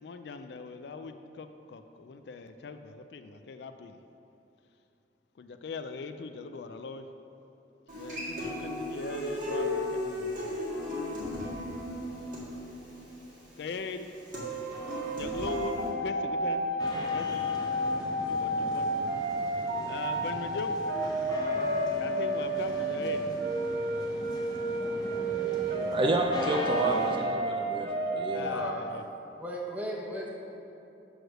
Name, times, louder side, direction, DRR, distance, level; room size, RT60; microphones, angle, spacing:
voice 1, 0.0-4.0 5.4-7.1 7.9-10.6 12.1-12.4 13.6-14.0 15.1-18.9 19.8-20.7 22.0-23.2 28.3-29.0, left 4 dB, 65° left, 8 dB, 0.4 m, -40 dB
Human voice / Acoustic guitar, 7.9-15.9, left 1 dB, 45° right, 1.9 m, -36 dB
sound 1, 14.3-28.7, right 2 dB, 70° right, 0.7 m, -32 dB
sound 2, 16.8-27.2, left 3 dB, 25° left, 0.9 m, -38 dB
voice 2, 25.9-28.6, right 2 dB, 30° right, 3 dB, 0.4 m, -29 dB
voice 3, 29.4-30.3, equal, 10° right, -3 dB, 1.0 m, -35 dB
6.3 x 4.8 x 6.3 m, 2.8 s
head